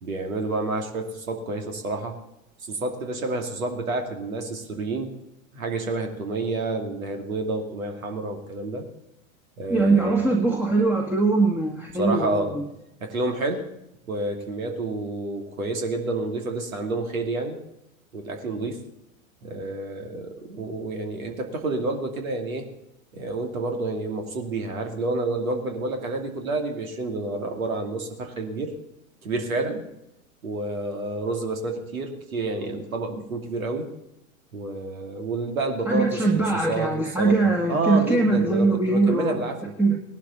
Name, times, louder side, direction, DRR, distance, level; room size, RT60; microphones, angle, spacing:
voice 1, 0.0-2.2 2.7-5.1 5.5-8.9 9.6-10.4 11.9-12.6 13.0-13.7 14.1-17.6 18.1-18.8 19.4-22.7 23.1-28.7 29.2-29.9 30.4-33.9 34.5-39.7, right 2 dB, 75° right, 4 dB, 2.6 m, -29 dB
voice 2, 9.7-12.6 35.9-39.4 39.8-40.0, right 3 dB, 5° right, 0 dB, 1.6 m, -21 dB
18.5 x 12.0 x 4.1 m, 0.86 s
figure-of-eight pair, 85°, 42 cm